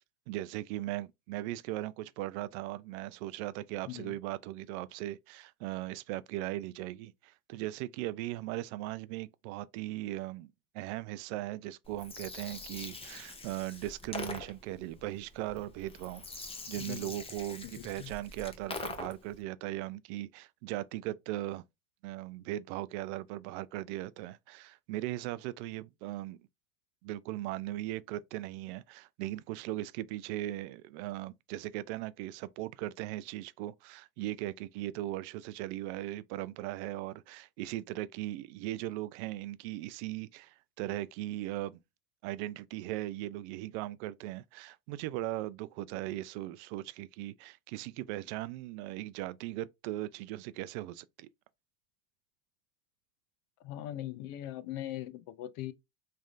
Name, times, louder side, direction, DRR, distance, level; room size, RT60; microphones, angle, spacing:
voice 1, 0.3-16.2 16.7-21.6 22.0-26.4 27.0-41.8 42.2-51.3, right 15 dB, 60° right, 0.5 m, -38 dB
voice 2, 3.9-4.2 16.8-17.1 17.6-18.1 53.6-55.7, left 13 dB, 50° left, 0.6 m, -40 dB
Gurgling, 11.9-19.4, left 3 dB, 15° left, 0.9 m, -44 dB
3.5 x 3.3 x 2.5 m
hypercardioid pair, 100°, 39 cm